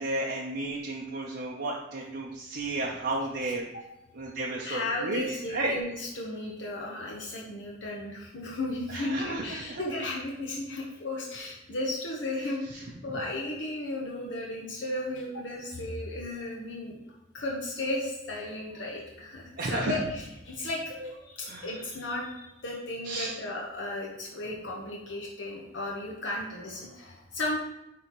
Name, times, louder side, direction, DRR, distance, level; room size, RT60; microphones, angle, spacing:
voice 1, 0.0-3.7 4.1-5.7 8.9-9.8 19.6-20.0 21.0-21.1 21.4-21.7 23.0-23.3, right 2 dB, 55° right, -3 dB, 0.7 m, -33 dB
voice 2, 3.4-3.8 4.6-17.0 17.3-20.8 21.2-27.6, left 1 dB, 70° left, -3 dB, 1.0 m, -35 dB
9.7 x 3.8 x 3.0 m, 0.93 s
head